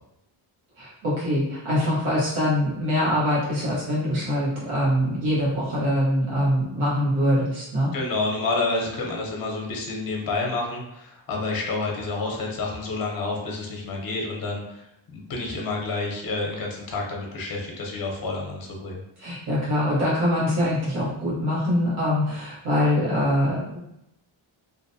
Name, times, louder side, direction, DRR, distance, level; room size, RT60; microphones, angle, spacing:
voice 1, 0.8-7.9 19.2-23.8, equal, 80° right, -9 dB, 1.2 m, -23 dB
voice 2, 7.9-14.8 15.1-19.0, left 3 dB, 45° left, -1 dB, 0.7 m, -29 dB
2.6 x 2.1 x 2.6 m, 0.83 s
cardioid pair, 115°, 49 cm